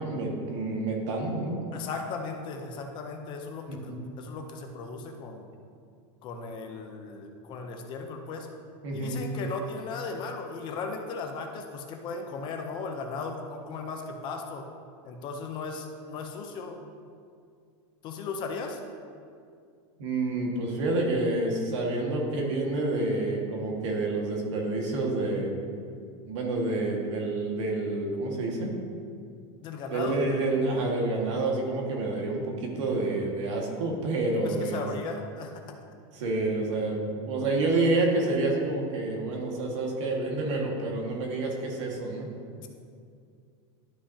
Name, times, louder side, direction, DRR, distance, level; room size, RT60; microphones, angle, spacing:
voice 1, 0.0-1.6 3.7-4.0 8.8-9.2 20.0-25.5 26.3-28.7 29.9-34.8 36.1-42.3, right 2 dB, 75° right, 0 dB, 1.7 m, -28 dB
voice 2, 1.7-5.5 6.2-8.5 8.9-14.6 15.0-16.8 18.0-18.8 29.6-30.2 34.3-35.8 42.6-42.7, left 4 dB, 30° left, 4 dB, 0.6 m, -37 dB
11.5 x 5.7 x 2.8 m, 2.3 s
supercardioid pair, 165°, 16 cm